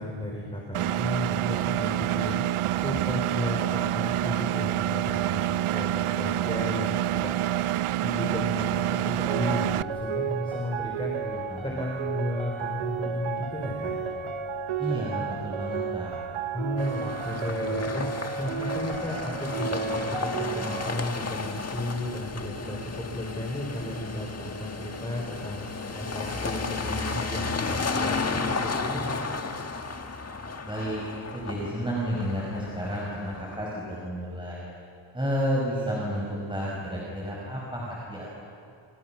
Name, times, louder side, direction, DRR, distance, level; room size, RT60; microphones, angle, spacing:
voice 1, 0.0-2.4 2.7-7.4 8.0-11.2 11.6-13.9 16.5-25.7 25.9-29.1, left 1 dB, 10° left, -1 dB, 4.5 m, -33 dB
Engine, 0.7-9.8, right 13 dB, 85° right, 0.6 m, -27 dB
sound 1, 9.3-21.0, right 6 dB, 70° right, 1.0 m, -32 dB
voice 2, 11.2-11.8 14.8-16.1 30.6-31.0 31.3-34.6 35.1-38.4, equal, 10° right, -5 dB, 5.9 m, -31 dB
sound 2, 16.8-33.8, left 4 dB, 30° left, 1.7 m, -33 dB
29.5 x 27.5 x 6.1 m, 2.4 s
wide cardioid pair, 120°, 49 cm